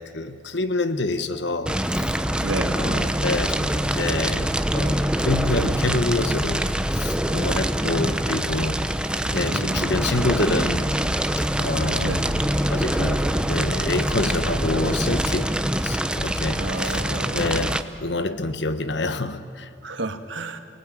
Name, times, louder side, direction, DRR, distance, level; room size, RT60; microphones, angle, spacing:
voice 1, 0.0-2.2 2.8-6.7 6.9-8.8 9.3-10.9 11.6-12.4 12.7-15.5 15.8-17.0 17.3-19.7, left 2 dB, 65° left, 1.3 m, -27 dB
Fire, 1.7-17.8, right 1 dB, 5° right, 0.8 m, -24 dB
voice 2, 2.4-2.8 9.5-9.9 12.0-12.2 16.5-17.5 19.8-20.6, right 2 dB, 80° right, 1.6 m, -31 dB
28.5 x 19.0 x 9.2 m
head